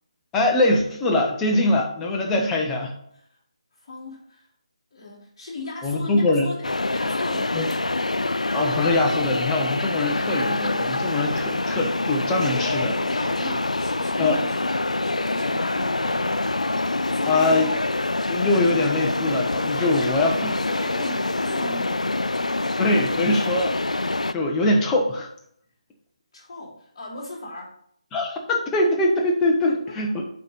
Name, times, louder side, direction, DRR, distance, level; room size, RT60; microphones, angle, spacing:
voice 1, 0.3-2.9 5.8-6.5 7.5-7.7 8.5-12.9 14.2-14.4 17.3-17.7 18.3-20.5 22.8-23.7 24.3-25.3 28.1-30.2, left 2 dB, 10° left, 0 dB, 1.0 m, -22 dB
voice 2, 3.8-4.5 4.9-8.0 12.4-17.8 19.7-22.7 26.3-27.8 29.7-29.9, left 2 dB, 35° left, -7 dB, 3.7 m, -36 dB
sound 1, 6.6-24.3, left 2 dB, 90° left, 0.4 m, -25 dB
8.2 x 4.2 x 5.3 m, 0.68 s
figure-of-eight pair, 155°, 4 cm